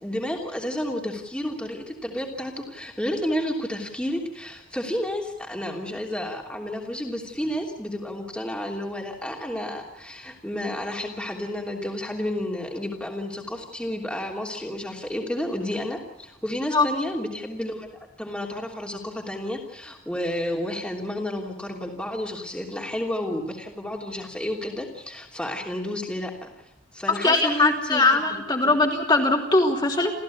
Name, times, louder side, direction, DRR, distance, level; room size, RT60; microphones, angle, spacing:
voice 1, 0.0-17.9 18.2-26.5 26.9-28.8, left 1 dB, 5° left, 0 dB, 3.0 m, -31 dB
voice 2, 27.2-30.1, left 2 dB, 20° left, 0 dB, 3.1 m, -21 dB
29.5 x 15.0 x 8.5 m, 0.92 s
head